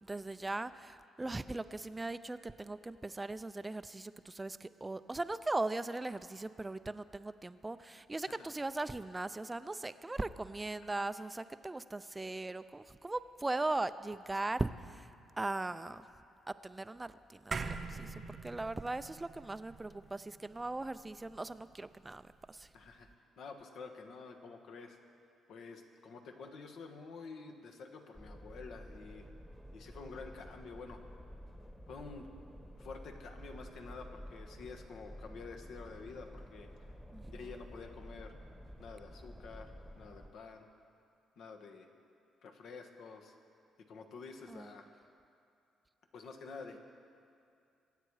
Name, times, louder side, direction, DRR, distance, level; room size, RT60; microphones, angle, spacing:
voice 1, 0.0-16.1 16.5-22.7 37.1-37.5 44.5-44.7, right 2 dB, 15° right, 13 dB, 0.5 m, -39 dB
sound 1, 17.5-22.1, right 4 dB, 40° right, 0.8 m, -44 dB
voice 2, 22.7-23.1 23.4-25.0 25.5-29.3 29.7-31.0 31.9-32.3 32.8-36.7 37.3-38.4 38.8-40.7 41.4-41.9 42.4-43.3 43.8-44.9 46.1-46.8, left 4 dB, 70° left, 4 dB, 1.5 m, -49 dB
sound 2, 28.1-40.3, equal, 5° left, 1.3 m, -51 dB
23.5 x 9.1 x 4.9 m, 2.5 s
cardioid pair, 90°, 0 cm